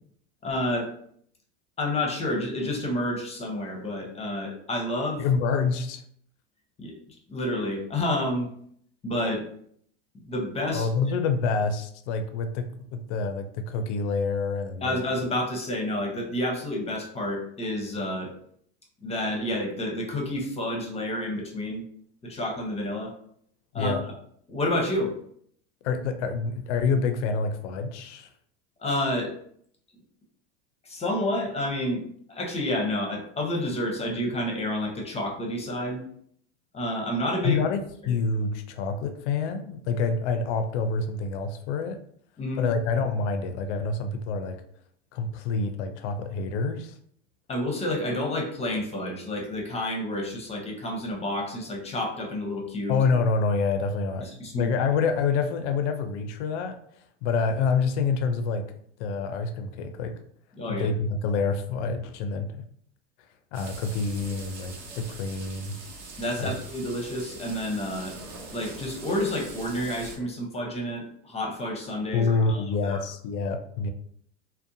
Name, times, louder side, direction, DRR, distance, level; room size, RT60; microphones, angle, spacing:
voice 1, 0.4-0.9 1.8-5.2 6.8-7.0 7.3-8.5 9.0-9.4 10.3-10.9 14.8-18.3 19.0-21.8 22.2-23.1 23.7-24.0 24.5-25.1 28.8-29.3 30.8-32.0 32.3-36.0 36.7-37.6 38.0-38.1 42.4-42.6 47.5-53.0 54.2-54.7 60.6-60.9 66.2-68.2 68.5-73.0, left 1 dB, 20° left, 1 dB, 0.6 m, -29 dB
voice 2, 5.2-6.0 10.7-15.0 23.7-24.0 25.8-28.3 37.4-42.0 42.6-44.6 45.1-47.0 52.9-54.3 54.5-56.8 57.2-58.7 59.0-60.2 60.7-62.5 63.5-65.8 66.4-66.5 72.1-73.9, left 4 dB, 75° left, 7 dB, 0.5 m, -27 dB
sound 1, 63.5-70.2, right 3 dB, 45° right, 0.8 m, -43 dB
2.6 x 2.1 x 2.6 m, 0.65 s
hypercardioid pair, 100°, 36 cm